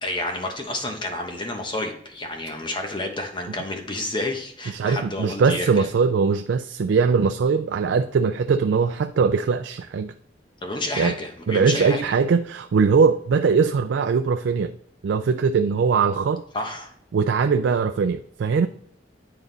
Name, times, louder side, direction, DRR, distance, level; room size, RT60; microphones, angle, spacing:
voice 1, 0.0-5.9 10.6-12.0 16.5-16.9, left 2 dB, 25° left, 3 dB, 1.1 m, -30 dB
voice 2, 4.7-10.1 11.0-11.1 11.5-14.7 15.0-16.4 17.1-18.7, right 5 dB, 75° right, 8 dB, 0.4 m, -21 dB
9.3 x 3.9 x 3.9 m, 0.69 s
head